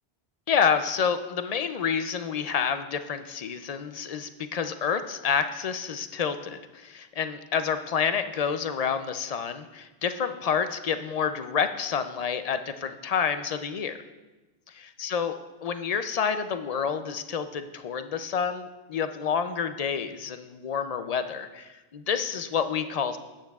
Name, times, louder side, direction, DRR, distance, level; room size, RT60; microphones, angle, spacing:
voice 1, 0.5-14.0 14.7-15.4 15.6-23.2, left 7 dB, 50° left, 9 dB, 0.5 m, -28 dB
13.0 x 9.0 x 2.3 m, 1.1 s
omnidirectional pair, 1.1 m